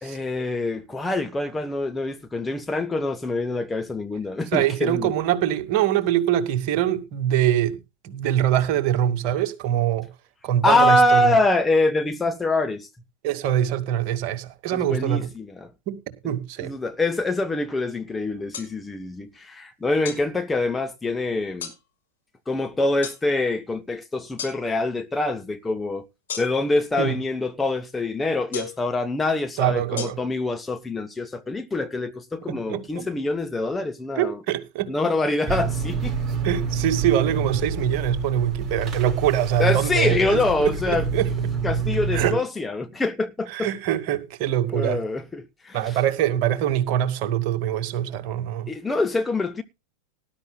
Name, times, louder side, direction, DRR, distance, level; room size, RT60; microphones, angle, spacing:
voice 1, 0.0-5.1 10.6-12.9 14.7-15.7 16.6-21.7 22.5-26.1 26.4-34.4 34.9-36.2 39.6-41.1 41.6-43.7 44.7-46.0 48.7-49.6, left 2 dB, 10° left, 1.2 m, -25 dB
voice 2, 4.5-7.8 8.0-10.1 10.4-11.4 13.2-15.3 15.9-16.0 16.2-16.7 27.0-27.2 29.6-30.2 32.5-33.1 34.2-34.9 36.4-41.3 42.1-42.4 43.5-45.0 45.7-48.7, right 11 dB, 45° right, 2.2 m, -24 dB
sound 1, 18.5-18.7 20.0-20.2 21.6-21.8 23.0-23.2 24.4-24.6 26.3-26.7 28.5-28.8 30.0-30.1, left 8 dB, 65° left, 5.4 m, -33 dB
sound 2, 35.5-42.3, right 4 dB, 20° right, 5.3 m, -28 dB
19.0 x 11.5 x 2.3 m
figure-of-eight pair, 90°, 0 cm